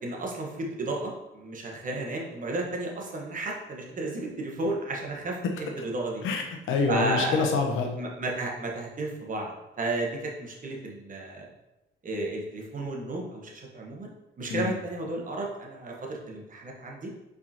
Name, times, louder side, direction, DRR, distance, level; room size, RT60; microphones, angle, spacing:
voice 1, 0.0-5.4 5.8-6.2 6.9-7.5 8.0-11.5 12.0-14.1 14.4-17.1, right 2 dB, 40° right, 0 dB, 1.1 m, -33 dB
voice 2, 6.2-8.0 14.5-14.7, left 4 dB, 80° left, 3 dB, 0.8 m, -26 dB
4.8 x 3.6 x 2.8 m, 0.99 s
cardioid pair, 90°, 20 cm